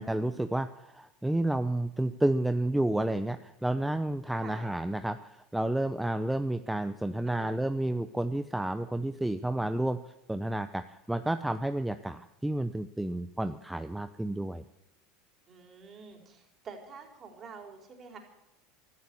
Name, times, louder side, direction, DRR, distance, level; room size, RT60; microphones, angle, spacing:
voice 1, 0.0-10.0 10.3-14.6, right 1 dB, 5° right, 9 dB, 0.7 m, -31 dB
voice 2, 4.4-4.7 7.3-7.6 15.5-18.2, right 5 dB, 35° right, 3 dB, 4.4 m, -47 dB
15.0 x 12.5 x 7.1 m, 0.90 s
hypercardioid pair, 85°, 0 cm